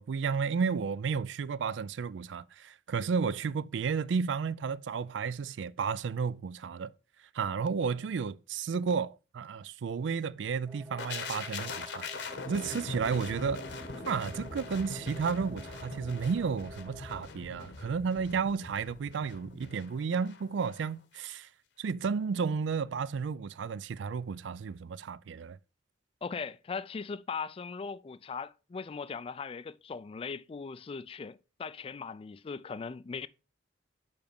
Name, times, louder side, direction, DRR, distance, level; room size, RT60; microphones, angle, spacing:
voice 1, 0.0-6.9 7.3-13.6 14.1-21.5 21.8-25.6, right 5 dB, 75° right, 0.4 m, -32 dB
sound 1, 10.7-17.3, right 2 dB, 10° right, 0.7 m, -51 dB
sound 2, 11.0-20.9 21.1-21.3, left 4 dB, 65° left, 1.1 m, -42 dB
voice 2, 26.2-33.3, left 5 dB, 30° left, 0.3 m, -39 dB
6.9 x 5.2 x 5.2 m
head